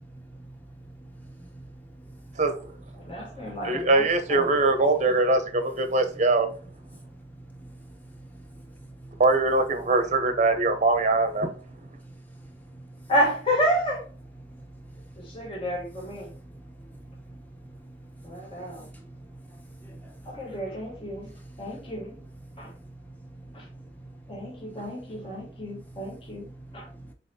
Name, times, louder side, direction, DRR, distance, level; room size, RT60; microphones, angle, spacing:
voice 1, 0.0-2.3 3.0-3.5 7.1-9.2 12.0-12.9 14.4-15.0 15.4-15.5 16.3-20.4 20.7-20.8 21.3-27.1, right 1 dB, 10° left, 0.9 m, -47 dB
voice 2, 2.3-2.8 3.4-6.5 9.2-11.5, right 2 dB, 40° right, 0.7 m, -22 dB
voice 3, 3.1-3.8 4.3-4.5 13.1-14.0 15.2-16.3 18.2-18.9 20.2-21.3 21.6-22.2 22.6-22.7 23.5-23.6 24.3-26.9, equal, 30° left, 1.2 m, -30 dB
4.0 x 4.0 x 2.8 m
head